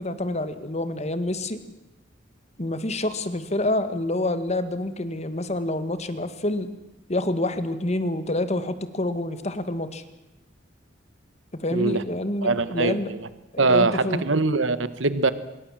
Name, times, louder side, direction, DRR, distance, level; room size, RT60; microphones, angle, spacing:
voice 1, 0.0-1.6 2.6-6.7 7.1-10.0 11.6-13.1 13.5-14.2, left 1 dB, 35° left, 1.9 m, -27 dB
voice 2, 11.7-12.0 12.4-13.3 13.6-15.3, right 3 dB, 80° right, 1.4 m, -22 dB
25.5 x 22.5 x 7.6 m
head